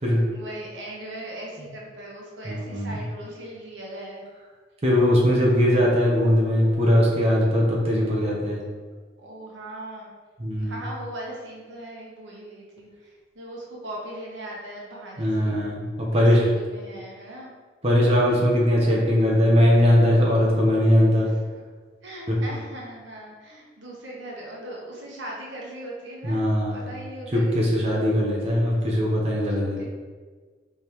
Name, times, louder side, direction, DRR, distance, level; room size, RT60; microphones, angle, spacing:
voice 1, 0.3-4.2 9.2-10.1 10.6-15.6 16.0-17.5 21.2-21.6 22.0-26.4 26.7-27.9 29.8-29.9, right 1 dB, 85° right, -3 dB, 1.1 m, -39 dB
voice 2, 2.4-3.0 4.8-8.6 10.4-10.8 15.2-16.5 17.8-21.3 22.3-22.4 26.2-26.9 27.3-29.9, equal, 35° right, -4 dB, 0.8 m, -20 dB
5.0 x 3.5 x 3.0 m, 1.5 s
head